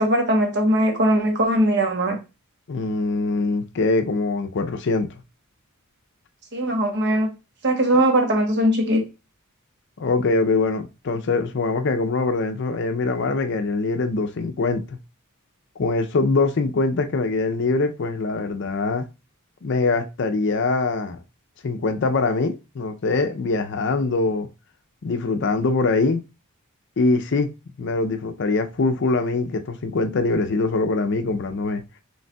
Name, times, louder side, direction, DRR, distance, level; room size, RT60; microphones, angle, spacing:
voice 1, 0.0-2.2 6.5-7.3 7.6-9.0, right 1 dB, 50° right, 1.0 m, -20 dB
voice 2, 2.7-5.1 10.0-15.0 15.8-19.1 19.6-21.2 21.6-24.5 25.0-26.2 27.0-27.5 27.8-31.8, left 3 dB, 55° left, 0.5 m, -23 dB
5.3 x 3.2 x 2.2 m
head